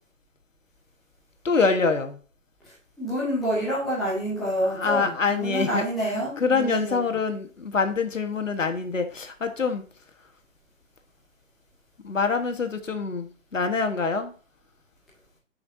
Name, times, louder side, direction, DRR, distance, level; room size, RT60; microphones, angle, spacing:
voice 1, 1.4-2.2 4.6-5.8 6.1-9.8 12.0-14.3, left 4 dB, 75° left, 6 dB, 1.5 m, -25 dB
voice 2, 2.6-7.2, equal, ahead, -10 dB, 0.5 m, -28 dB
9.7 x 5.8 x 2.7 m, 0.37 s
figure-of-eight pair, 140°, 38 cm